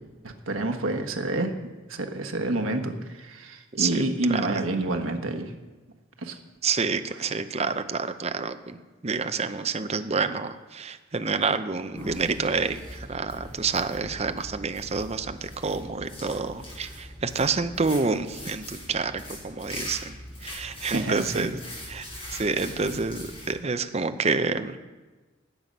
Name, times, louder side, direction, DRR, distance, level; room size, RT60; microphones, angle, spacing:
voice 1, 0.2-1.5 1.9-5.5 6.2-6.4 20.9-21.5, right 2 dB, 80° right, 4 dB, 1.3 m, -28 dB
voice 2, 6.6-8.8 9.0-20.2 20.4-21.6 21.9-22.1 22.3-24.8, right 4 dB, 30° right, 9 dB, 0.6 m, -28 dB
sound 1, 11.9-23.5, left 1 dB, 30° left, 5.3 m, -41 dB
18.0 x 7.6 x 5.4 m, 1.3 s
head